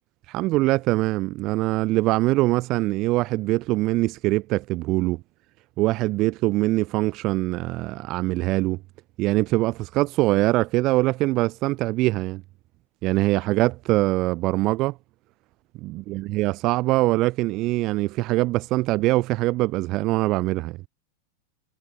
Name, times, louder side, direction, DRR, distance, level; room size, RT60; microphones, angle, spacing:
voice 1, 0.3-5.2 5.8-8.8 9.2-12.4 13.0-15.0 15.8-20.8, right 19 dB, 40° right, 0.7 m, -23 dB
figure-of-eight pair, 90°, 0 cm